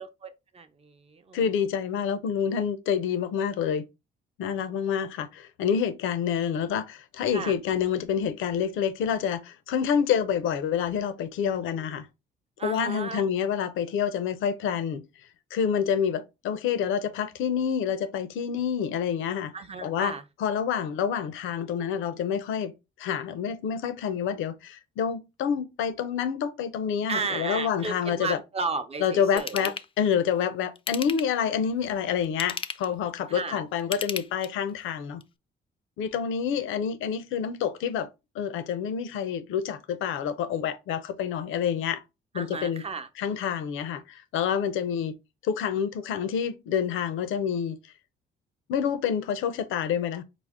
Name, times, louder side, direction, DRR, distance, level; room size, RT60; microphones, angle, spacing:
voice 1, 0.0-1.4 7.3-7.5 12.6-13.2 19.5-20.2 27.1-29.7 33.3-33.6 42.3-43.1, right 4 dB, 30° right, 0.6 m, -34 dB
voice 2, 1.3-3.8 4.4-12.1 12.6-15.1 15.5-19.5 19.8-20.1 20.4-22.7 23.0-28.4 29.0-35.2 36.0-38.1 38.3-42.0 42.3-42.8 43.2-45.2 45.4-47.8 48.7-50.2, left 7 dB, 85° left, 0.6 m, -28 dB
Ratchet pawl / Tools, 29.4-29.9 30.7-31.4 32.2-32.9 33.8-34.7 35.2-35.3, left 6 dB, 25° left, 0.4 m, -35 dB
4.9 x 2.0 x 3.5 m
cardioid pair, 90°, 20 cm